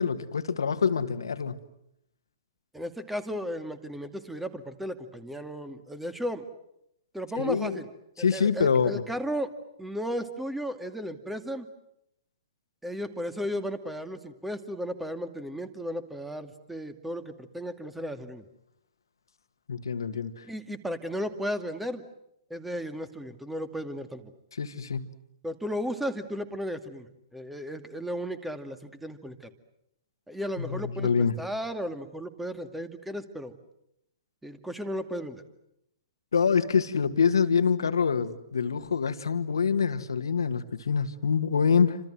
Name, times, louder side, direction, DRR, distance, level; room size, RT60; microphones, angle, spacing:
voice 1, 0.0-1.6 7.4-7.8 8.2-9.0 19.7-20.5 24.5-25.2 30.6-31.3 36.3-42.0, left 6 dB, 70° left, 10 dB, 1.9 m, -26 dB
voice 2, 2.7-6.4 7.1-7.9 8.2-9.5 9.8-11.7 12.8-18.4 20.1-20.2 20.5-22.0 22.5-24.3 25.4-29.5 30.3-33.6 34.4-35.4, equal, 5° right, 10 dB, 2.3 m, -35 dB
29.0 x 26.5 x 7.8 m, 0.80 s
figure-of-eight pair, 115°, 2 cm